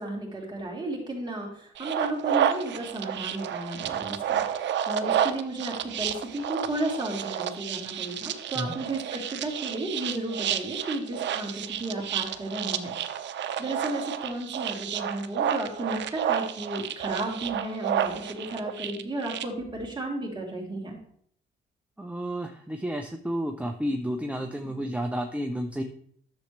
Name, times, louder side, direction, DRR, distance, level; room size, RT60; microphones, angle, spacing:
voice 1, 0.0-4.4 4.9-12.9 13.4-20.9, right 1 dB, 20° right, -2 dB, 3.2 m, -33 dB
sound 1, 1.8-19.4, right 9 dB, 65° right, 0.7 m, -30 dB
voice 2, 22.0-25.8, equal, 5° right, 4 dB, 0.7 m, -31 dB
10.5 x 7.2 x 3.3 m, 0.62 s
cardioid pair, 90°, 20 cm